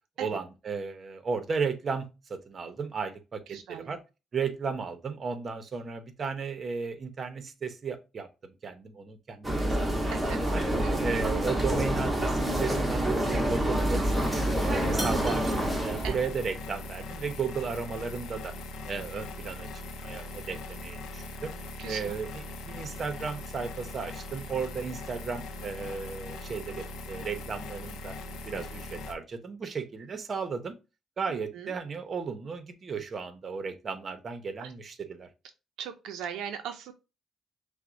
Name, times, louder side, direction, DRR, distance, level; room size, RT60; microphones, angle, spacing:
voice 1, 0.2-4.0 4.3-9.9 10.3-10.6 11.0-18.5 18.9-21.5 21.9-28.1 28.4-30.7 31.2-35.3, right 5 dB, 45° right, 0.7 m, -35 dB
voice 2, 3.5-3.9 10.1-10.4 10.6-11.1 16.0-16.2 21.8-22.2 31.3-31.7 34.6-34.7 35.8-36.9, right 8 dB, 90° right, 0.4 m, -39 dB
sound 1, 9.4-16.3, right 1 dB, 10° right, 1.0 m, -27 dB
sound 2, 14.1-29.1, left 2 dB, 85° left, 0.5 m, -40 dB
5.7 x 2.1 x 2.5 m
cardioid pair, 90°, 0 cm